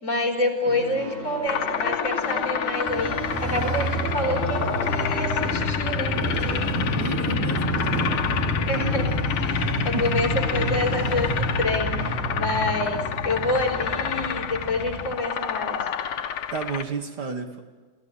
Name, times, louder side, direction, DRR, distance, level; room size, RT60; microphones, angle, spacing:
voice 1, 0.0-6.2 8.7-15.8, left 2 dB, 35° left, 1 dB, 4.3 m, -28 dB
sound 1, 0.6-14.2, equal, 30° right, 8.4 m, -37 dB
sound 2, 1.5-16.8, left 8 dB, 85° left, 2.0 m, -29 dB
Motorcycle, 2.9-15.1, equal, 5° left, 4.8 m, -28 dB
voice 2, 7.0-7.6 9.9-10.2 16.5-17.6, right 4 dB, 55° right, 5 dB, 1.9 m, -31 dB
28.0 x 16.5 x 8.3 m, 1.4 s
omnidirectional pair, 2.3 m